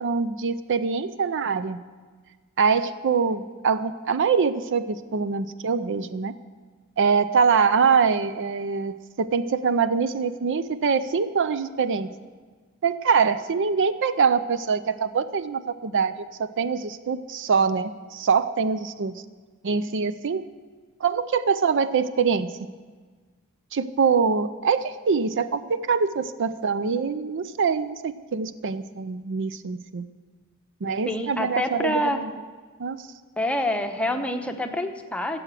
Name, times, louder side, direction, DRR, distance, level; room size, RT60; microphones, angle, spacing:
voice 1, 0.0-1.8 2.6-6.3 7.0-12.1 12.8-19.2 19.6-20.4 21.0-22.5 23.7-30.1 30.8-32.3 32.8-33.1, right 5 dB, 55° right, 13 dB, 0.5 m, -24 dB
voice 2, 31.1-32.2 33.4-35.4, left 1 dB, 5° left, 5 dB, 0.9 m, -26 dB
15.5 x 7.9 x 7.5 m, 1.4 s
head